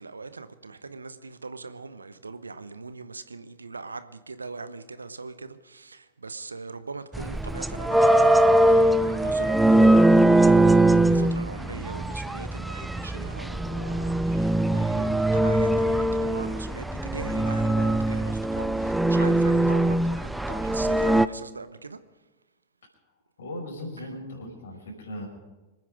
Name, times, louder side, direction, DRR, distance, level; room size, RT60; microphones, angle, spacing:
voice 1, 0.0-8.4 8.7-22.0 24.0-24.1, right 4 dB, 80° right, 0.8 m, -40 dB
sound 1, 7.1-21.3, right 1 dB, 5° right, 0.5 m, -21 dB
voice 2, 23.4-25.3, left 1 dB, 65° left, 5.5 m, -37 dB
26.0 x 9.3 x 5.2 m
figure-of-eight pair, 90°, 0 cm